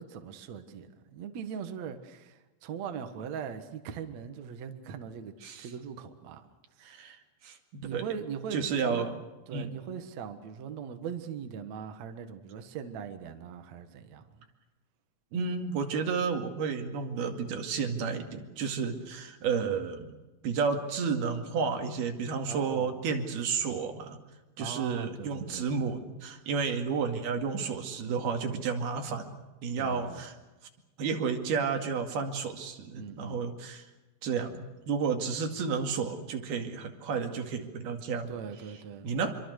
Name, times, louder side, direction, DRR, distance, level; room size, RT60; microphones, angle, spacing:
voice 1, 0.0-6.5 6.8-7.0 7.8-9.1 9.5-14.5 22.4-23.0 24.6-25.8 29.8-30.3 33.0-33.4 38.3-39.1, right 7 dB, 55° right, 2.5 m, -40 dB
voice 2, 6.8-7.2 7.4-8.0 8.5-9.2 9.5-9.7 15.3-20.2 20.4-24.2 24.6-30.3 31.0-33.9 34.2-38.3 39.0-39.3, right 5 dB, 85° right, 4.2 m, -31 dB
26.5 x 24.0 x 6.6 m
omnidirectional pair, 4.3 m